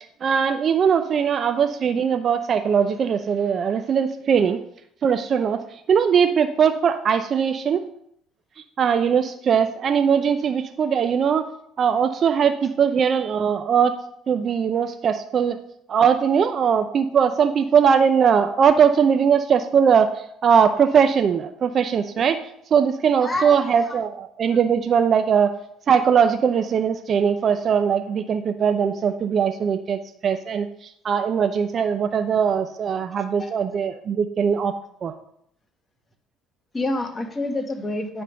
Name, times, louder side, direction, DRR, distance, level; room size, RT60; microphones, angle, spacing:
voice 1, 0.2-4.6 5.0-7.8 8.8-11.5 11.8-13.9 14.3-15.6 15.9-22.4 22.7-25.5 25.9-34.7 35.0-35.1, right 7 dB, 50° right, 8 dB, 0.5 m, -20 dB
voice 2, 23.2-24.0 33.4-33.5 36.7-38.2, left 2 dB, 20° left, 4 dB, 1.5 m, -28 dB
9.5 x 3.6 x 6.3 m, 0.70 s
supercardioid pair, 80°, 0 cm